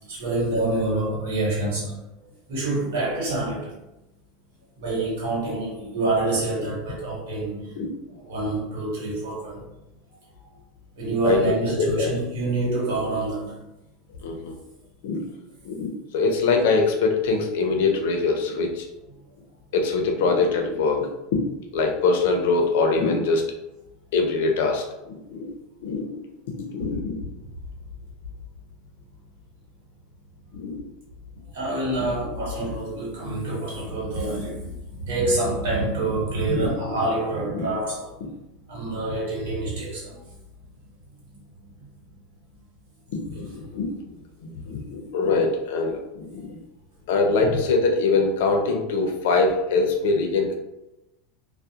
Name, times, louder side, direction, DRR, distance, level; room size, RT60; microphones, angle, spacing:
voice 1, 0.1-2.0 2.5-3.8 4.8-7.7 8.2-9.6 11.0-13.6 25.8-25.9 31.5-38.1 38.7-40.2 41.6-41.7, right 2 dB, 75° right, -4 dB, 1.2 m, -27 dB
voice 2, 11.8-12.1 14.2-14.5 15.0-15.2 15.6-18.8 19.7-21.4 21.7-23.4 24.1-25.5 25.8-26.2 26.6-27.2 30.5-30.9 36.5-36.7 37.5-37.7 43.1-43.9 44.4-46.6 47.1-50.5, left 3 dB, 70° left, 3 dB, 0.5 m, -23 dB
2.3 x 2.0 x 2.8 m, 0.94 s
supercardioid pair, 175°, 0 cm